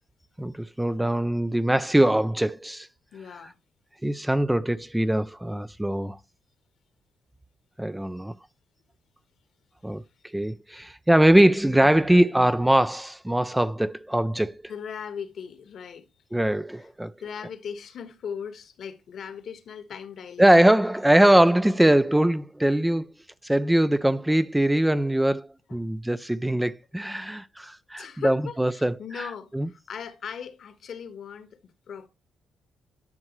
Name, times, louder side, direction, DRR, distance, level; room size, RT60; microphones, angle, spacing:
voice 1, 0.4-2.9 4.0-6.2 7.8-8.3 9.8-10.0 10.3-14.6 16.3-17.1 20.4-23.1 23.4-29.3 29.5-29.7, right 1 dB, 5° right, 0.4 m, -22 dB
voice 2, 3.1-3.6 14.7-16.1 17.2-20.5 25.7-26.0 28.0-32.1, left 7 dB, 60° left, 1.3 m, -38 dB
11.0 x 6.2 x 3.1 m
cardioid pair, 90°, 0 cm